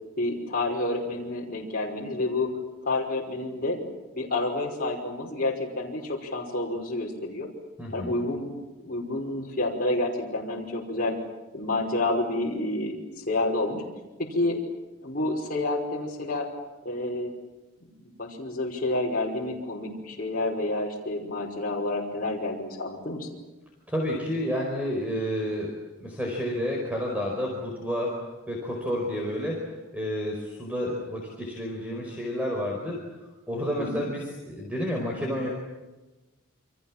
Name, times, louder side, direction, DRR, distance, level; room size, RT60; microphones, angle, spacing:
voice 1, 0.2-2.5 2.9-3.8 4.1-7.5 7.9-8.5 8.8-11.2 11.5-13.0 13.3-13.8 14.2-14.6 15.0-16.5 16.8-17.3 18.0-23.3 33.8-34.0, left 2 dB, 40° left, -2 dB, 5.4 m, -29 dB
voice 2, 7.8-8.1 23.9-25.7 26.0-28.2 28.5-33.1 33.5-35.5, equal, 5° right, -1 dB, 5.0 m, -30 dB
29.5 x 25.5 x 7.5 m, 1.1 s
head